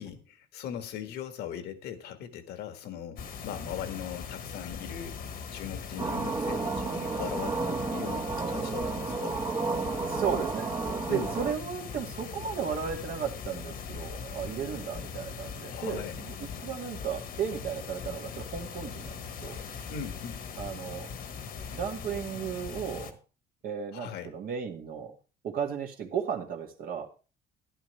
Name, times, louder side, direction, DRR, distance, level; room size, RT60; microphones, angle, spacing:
voice 1, 0.0-5.2 5.5-9.4 11.1-11.3 15.7-16.2 19.9-20.4 23.9-24.3, left 9 dB, 75° left, 8 dB, 1.7 m, -39 dB
sound 1, 3.2-23.1, left 6 dB, 60° left, 1.5 m, -40 dB
sound 2, 6.0-11.5, right 4 dB, 30° right, 1.2 m, -32 dB
voice 2, 10.1-10.7 11.1-19.6 20.6-21.1 21.7-23.2 23.6-25.2 25.4-27.1, right 7 dB, 60° right, 3 dB, 2.1 m, -34 dB
12.5 x 11.0 x 3.3 m, 0.34 s
cardioid pair, 110°, 17 cm